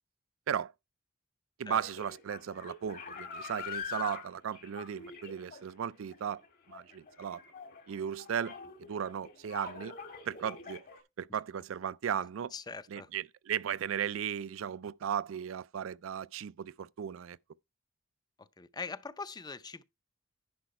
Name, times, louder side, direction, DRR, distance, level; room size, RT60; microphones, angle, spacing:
voice 1, 1.6-6.4 6.7-7.4 7.9-10.0 10.3-10.8 11.2-12.5 12.9-17.4, right 8 dB, 75° right, 0.4 m, -36 dB
sound 1, 1.7-11.0, left 5 dB, 45° left, 1.7 m, -45 dB
voice 2, 12.5-13.1 18.4-19.8, left 4 dB, 20° left, 0.5 m, -42 dB
10.5 x 5.6 x 4.2 m
head